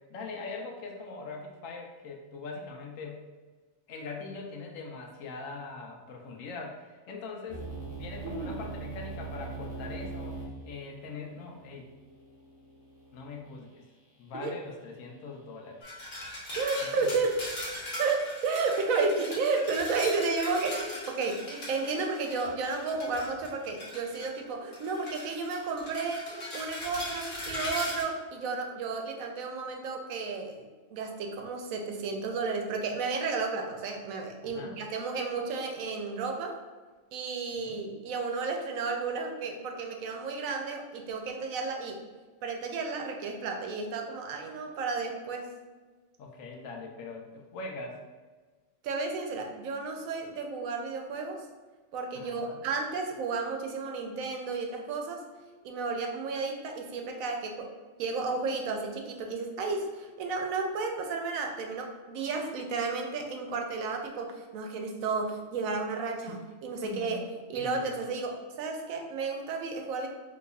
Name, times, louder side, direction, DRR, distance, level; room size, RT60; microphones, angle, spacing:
voice 1, 0.1-3.3 3.9-7.6 8.0-11.9 13.1-13.8 14.2-15.9 16.8-17.2 34.4-34.8 37.5-37.8 46.2-48.0 52.1-52.6 66.2-66.4 66.8-67.2 67.6-68.0, left 3 dB, 75° left, 1 dB, 1.0 m, -42 dB
sound 1, 7.5-13.4, right 4 dB, 10° right, 0.8 m, -41 dB
sound 2, 15.8-24.4 24.7-28.0, left 1 dB, 50° left, 1.2 m, -40 dB
voice 2, 16.6-17.4 18.0-30.7 30.9-36.6 37.1-42.0 42.4-45.5 48.8-51.5 51.9-55.2 55.6-57.7 58.0-67.2 67.5-70.1, right 4 dB, 90° right, 3 dB, 1.0 m, -32 dB
4.0 x 2.8 x 2.3 m, 1.3 s
omnidirectional pair, 1.4 m